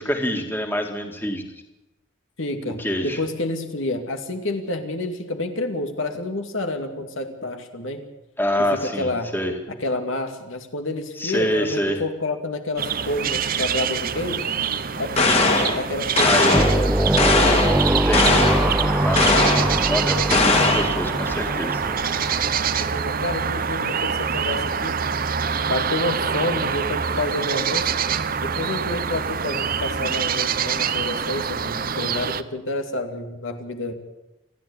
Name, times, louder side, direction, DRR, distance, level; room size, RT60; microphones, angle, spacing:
voice 1, 0.0-1.5 2.8-3.2 8.4-9.5 11.2-12.0 16.3-16.6 17.9-18.6 19.0-19.4 19.9-21.8, equal, 10° left, 3 dB, 2.2 m, -26 dB
voice 2, 2.4-8.0 8.8-9.3 9.7-14.4 15.0-16.9 22.9-25.0 25.6-27.9 28.4-33.9, left 2 dB, 75° left, 5 dB, 2.5 m, -29 dB
sound 1, 12.8-32.4, right 7 dB, 45° right, 0.8 m, -25 dB
sound 2, 15.2-15.8 16.2-16.8 17.2-17.8 18.1-18.7 19.2-19.7 20.3-21.0, left 3 dB, 30° left, 2.5 m, -19 dB
sound 3, 16.5-23.0, right 1 dB, 5° right, 0.8 m, -23 dB
29.0 x 11.0 x 8.7 m, 0.96 s
head